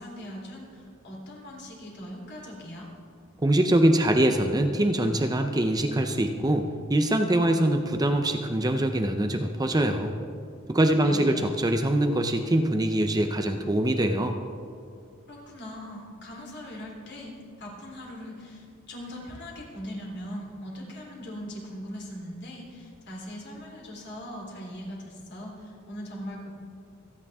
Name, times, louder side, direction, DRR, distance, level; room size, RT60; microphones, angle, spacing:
voice 1, 0.0-2.9 10.9-11.4 15.3-26.5, equal, 55° left, -2 dB, 3.4 m, -40 dB
voice 2, 3.4-10.1 10.7-14.4, right 1 dB, 20° right, 5 dB, 0.7 m, -23 dB
27.0 x 9.8 x 3.6 m, 2.3 s
head